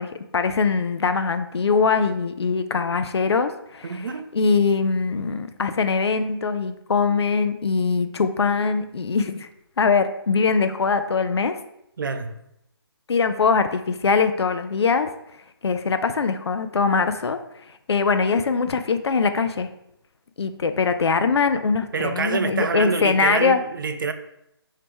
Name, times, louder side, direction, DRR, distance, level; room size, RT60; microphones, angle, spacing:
voice 1, 0.0-4.1 4.3-9.5 9.8-11.6 13.1-15.1 15.6-17.4 17.9-19.7 20.4-23.6, left 5 dB, 85° left, 0.5 m, -22 dB
voice 2, 3.8-4.3 12.0-12.4 21.9-24.1, right 5 dB, 55° right, 0.4 m, -26 dB
3.4 x 2.8 x 4.4 m
hypercardioid pair, 170°, 13 cm